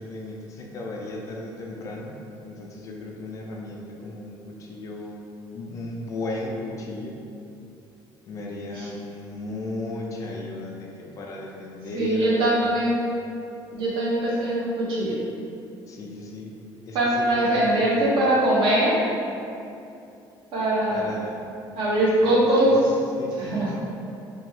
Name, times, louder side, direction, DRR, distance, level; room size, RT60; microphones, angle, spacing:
voice 1, 0.0-2.1 2.4-5.2 5.5-7.2 8.3-12.7 15.9-16.6 16.9-17.9 20.9-21.5 22.2-22.3 22.6-22.8 23.2-23.7, left 2 dB, 35° left, -1 dB, 0.3 m, -35 dB
voice 2, 11.9-13.0 13.7-15.2 16.9-18.9 20.5-21.1 21.8-22.9 23.4-23.7, right 1 dB, 65° right, -6 dB, 0.8 m, -22 dB
2.8 x 2.2 x 3.1 m, 2.6 s
cardioid pair, 160°, 9 cm